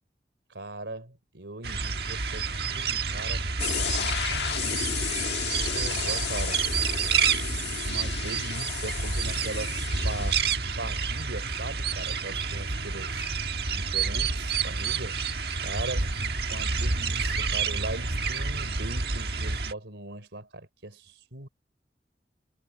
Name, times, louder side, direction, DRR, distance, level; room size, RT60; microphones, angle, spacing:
voice 1, 0.5-3.4 4.0-6.7 7.9-10.4 10.8-13.3 13.7-15.2 15.6-21.5, right 2 dB, 85° right, 3.7 m, -40 dB
sound 1, 1.6-19.7, right 5 dB, 60° right, 1.5 m, -29 dB
sound 2, 3.6-10.4, left 8 dB, 70° left, 1.4 m, -33 dB
head